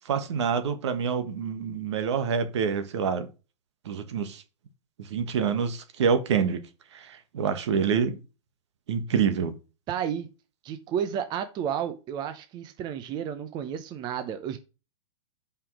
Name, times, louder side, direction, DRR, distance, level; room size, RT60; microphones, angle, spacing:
voice 1, 0.1-3.3 3.8-4.4 5.1-6.6 7.3-8.2 8.9-9.5, right 6 dB, 65° right, 1.5 m, -26 dB
voice 2, 9.9-10.3 10.6-14.6, right 9 dB, 25° right, 0.8 m, -32 dB
5.6 x 5.1 x 6.2 m
hypercardioid pair, 125°, 16 cm